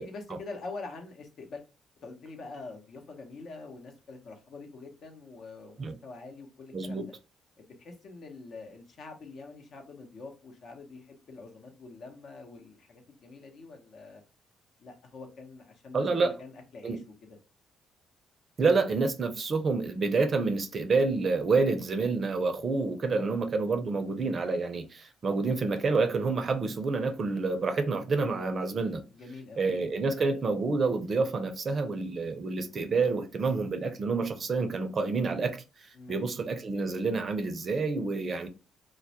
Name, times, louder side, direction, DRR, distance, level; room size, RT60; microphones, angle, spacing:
voice 1, 0.0-1.6 2.0-7.1 7.6-14.2 14.8-17.0 23.2-23.3 29.1-29.8 35.9-36.3 36.7-37.2 38.0-38.2, left 3 dB, 65° left, 0.7 m, -45 dB
voice 2, 6.7-7.1 15.9-16.4 16.8-17.0 18.6-29.0 29.6-38.5, right 4 dB, 45° right, 0.5 m, -28 dB
2.2 x 2.0 x 2.7 m
cardioid pair, 90°, 0 cm